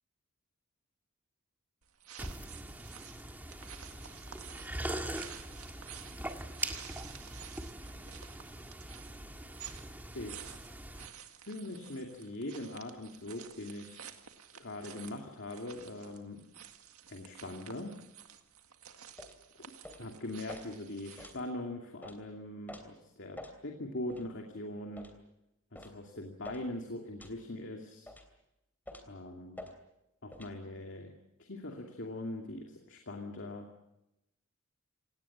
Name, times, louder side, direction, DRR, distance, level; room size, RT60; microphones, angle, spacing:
sound 1, 1.8-21.5, right 9 dB, 80° right, 1.9 m, -52 dB
sound 2, 2.2-11.1, right 1 dB, 10° right, 1.7 m, -42 dB
voice 1, 10.1-10.6 11.5-14.1 14.6-16.4 17.1-17.9 20.0-23.4 23.6-25.0 25.7-28.1 29.1-29.6 30.2-31.1 31.4-33.7, left 1 dB, 55° left, 2 dB, 2.6 m, -41 dB
sound 3, 19.2-19.4 19.8-20.1 20.5-20.7 21.2-21.4 22.0-22.2 22.7-22.8 23.4-23.6 24.1-24.2 24.9-25.2 25.7-26.0 26.4-26.6 27.2-27.4 28.1-28.3 28.8-29.1 29.5-29.7 30.3-30.5, left 1 dB, 10° left, 3.0 m, -47 dB
27.0 x 18.5 x 7.4 m, 0.87 s
head